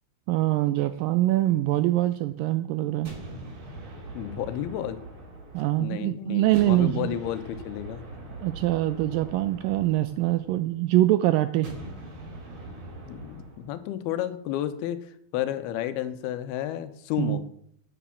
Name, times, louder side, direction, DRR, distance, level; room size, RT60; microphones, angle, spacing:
voice 1, 0.3-3.1 5.5-7.1 8.4-11.7 17.2-17.4, right 15 dB, 85° right, 11 dB, 2.0 m, -24 dB
sound 1, 3.0-6.1 6.5-10.8 11.6-13.7, right 2 dB, 45° right, 4.1 m, -42 dB
voice 2, 4.1-5.0 5.8-8.0 13.1-17.5, left 11 dB, 85° left, 11 dB, 2.7 m, -32 dB
8.5 x 8.1 x 7.1 m, 0.69 s
omnidirectional pair, 4.4 m